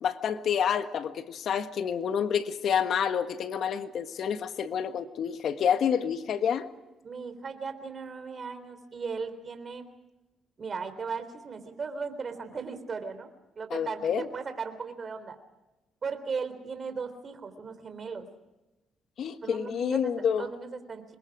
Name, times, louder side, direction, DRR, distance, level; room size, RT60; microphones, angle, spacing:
voice 1, 0.0-6.7 13.7-14.2 19.2-20.5, left 8 dB, 65° left, 1.5 m, -28 dB
voice 2, 7.0-9.9 10.6-13.3 13.6-15.4 16.0-18.3 19.4-21.0, right 5 dB, 40° right, 3.6 m, -37 dB
27.0 x 21.5 x 4.9 m
cardioid pair, 90°, 0 cm